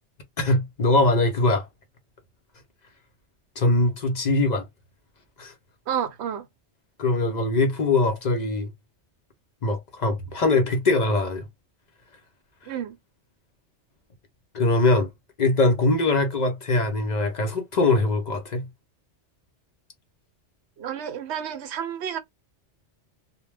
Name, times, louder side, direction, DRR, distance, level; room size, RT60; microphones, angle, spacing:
voice 1, 0.4-1.7 3.6-4.7 5.4-5.5 7.0-8.7 9.6-11.5 14.5-15.1 15.4-18.7, left 2 dB, 50° left, 0.5 m, -22 dB
voice 2, 5.9-6.5 12.7-13.0 20.8-22.2, right 9 dB, 75° right, 0.8 m, -30 dB
2.1 x 2.1 x 3.1 m
omnidirectional pair, 1.2 m